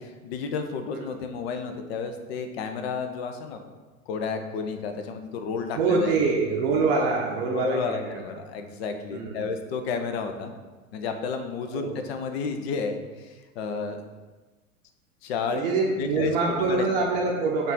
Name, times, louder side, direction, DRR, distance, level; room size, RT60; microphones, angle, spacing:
voice 1, 0.2-3.6 4.1-6.1 7.5-10.5 10.9-14.0 15.2-16.8, left 5 dB, 45° left, 7 dB, 0.6 m, -31 dB
voice 2, 5.7-8.2 9.1-9.5 11.7-12.0 15.5-17.7, right 4 dB, 40° right, -1 dB, 0.7 m, -25 dB
5.3 x 2.5 x 3.8 m, 1.3 s
figure-of-eight pair, 90°, 43 cm